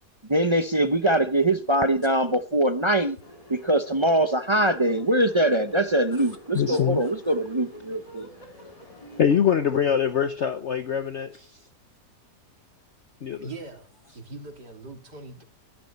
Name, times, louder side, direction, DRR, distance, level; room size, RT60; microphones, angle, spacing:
voice 1, 0.3-3.2 3.5-8.3, right 1 dB, 35° right, 0.4 m, -23 dB
sound 1, 3.2-9.4, equal, 20° left, 2.8 m, -47 dB
voice 2, 6.5-7.1 8.5-8.6 9.2-11.5 13.2-13.5, left 8 dB, 50° left, 1.0 m, -24 dB
voice 3, 13.4-13.9 14.1-15.4, right 3 dB, 85° right, 4.0 m, -40 dB
22.0 x 12.0 x 4.3 m
omnidirectional pair, 1.8 m